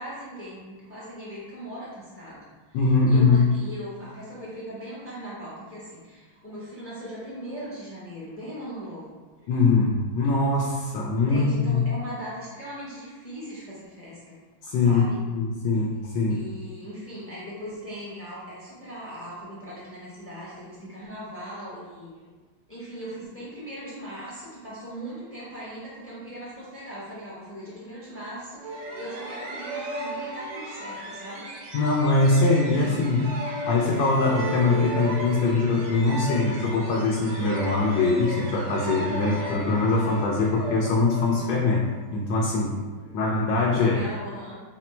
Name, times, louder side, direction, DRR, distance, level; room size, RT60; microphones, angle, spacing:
voice 1, 0.0-2.8 3.1-9.2 9.4-9.5 11.2-14.4 14.8-15.2 16.3-22.3 22.7-31.5 32.7-33.5 42.9-43.2 43.6-44.6, equal, 15° left, -8 dB, 0.4 m, -39 dB
voice 2, 2.7-3.5 9.5-11.9 14.6-16.5 31.7-33.3 33.7-41.9 42.1-42.8 43.1-44.0, left 3 dB, 80° left, -3 dB, 1.3 m, -22 dB
sound 1, 28.6-42.1, right 1 dB, 75° right, 1.4 m, -35 dB
4.2 x 2.0 x 4.3 m, 1.3 s
omnidirectional pair, 2.1 m